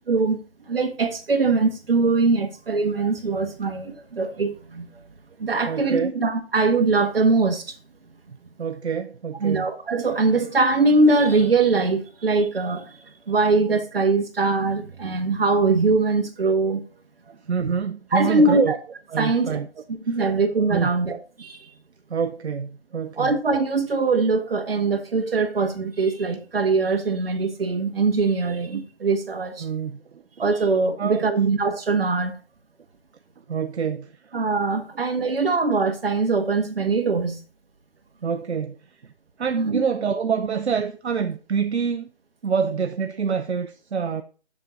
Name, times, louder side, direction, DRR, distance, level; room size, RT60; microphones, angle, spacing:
voice 1, 0.1-0.4 0.7-4.9 5.4-7.8 9.4-13.0 13.3-16.8 18.1-18.8 19.2-19.6 19.9-21.6 23.2-29.7 30.4-32.4 34.3-37.4 39.5-39.8, right 3 dB, 55° right, 1.4 m, -22 dB
voice 2, 5.7-6.1 8.6-9.7 17.5-18.8 19.1-19.7 20.7-20.9 22.1-23.3 29.6-30.2 31.0-31.3 33.5-34.1 35.0-35.1 38.2-38.8 39.4-42.1 42.4-44.2, right 6 dB, 75° right, 0.7 m, -26 dB
7.6 x 6.4 x 4.0 m
figure-of-eight pair, 165°, 34 cm